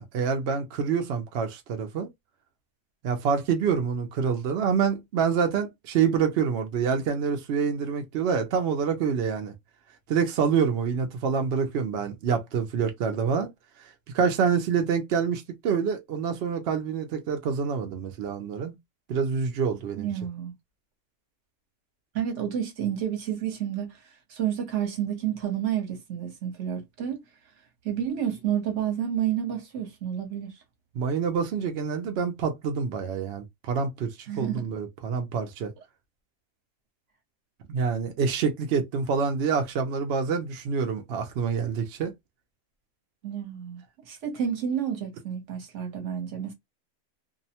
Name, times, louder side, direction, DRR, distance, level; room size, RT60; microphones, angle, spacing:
voice 1, 0.0-2.1 3.0-9.5 10.1-13.5 14.1-18.8 19.1-20.1 31.0-35.7 37.7-42.1, right 6 dB, 75° right, 0.6 m, -27 dB
voice 2, 19.9-20.5 22.1-27.2 27.8-30.6 34.3-34.6 43.2-46.5, right 9 dB, 55° right, 1.0 m, -30 dB
2.6 x 2.0 x 2.8 m
omnidirectional pair, 1.7 m